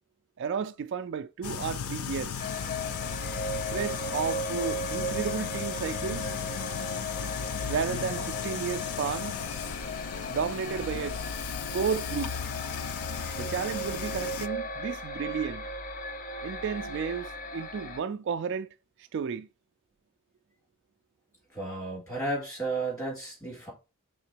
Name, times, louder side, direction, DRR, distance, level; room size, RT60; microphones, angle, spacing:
voice 1, 0.4-2.5 3.7-6.3 7.7-9.4 10.3-11.2 11.7-12.3 13.3-15.7 16.4-18.7 19.0-19.5, right 6 dB, 55° right, 0.3 m, -32 dB
sound 1, 1.4-14.5, left 7 dB, 90° left, 0.4 m, -36 dB
sound 2, 1.5-11.3, left 2 dB, 70° left, 1.3 m, -48 dB
sound 3, 2.4-18.0, left 1 dB, 40° left, 0.6 m, -36 dB
voice 2, 21.5-23.7, right 2 dB, 15° left, 3.4 m, -33 dB
5.9 x 3.7 x 4.4 m
head